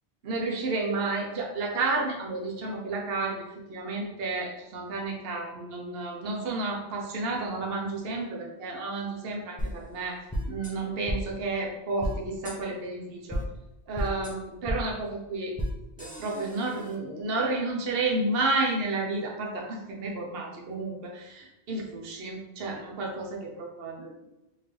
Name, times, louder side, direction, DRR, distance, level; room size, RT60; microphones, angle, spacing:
voice 1, 0.2-3.4 3.7-10.1 10.4-13.4 13.9-15.5 16.0-24.1, right 3 dB, 60° right, -1 dB, 1.0 m, -31 dB
sound 1, 9.6-9.7 10.3-10.7 11.1-11.2 12.0-12.1 12.4-12.6 13.3-13.4 13.9-14.3 14.6-14.8 15.6-15.7 16.0-17.0, equal, 10° left, 0.5 m, -32 dB
3.7 x 2.7 x 3.3 m, 0.97 s
omnidirectional pair, 1.1 m